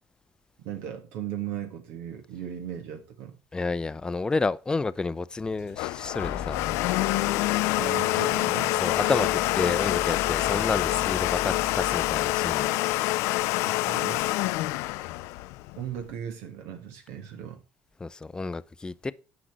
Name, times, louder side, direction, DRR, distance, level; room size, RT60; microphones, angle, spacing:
voice 1, 0.6-3.4 7.8-8.7 13.6-14.2 15.8-17.6, right 10 dB, 85° right, 1.6 m, -37 dB
voice 2, 3.5-6.6 8.8-12.7 18.0-19.1, left 3 dB, 15° left, 0.5 m, -30 dB
Domestic sounds home sounds, 5.4-16.1, left 19 dB, 85° left, 0.4 m, -26 dB
sound 1, 6.2-12.7, left 6 dB, 45° left, 1.1 m, -38 dB
10.0 x 5.2 x 6.1 m
cardioid pair, 110°, 5 cm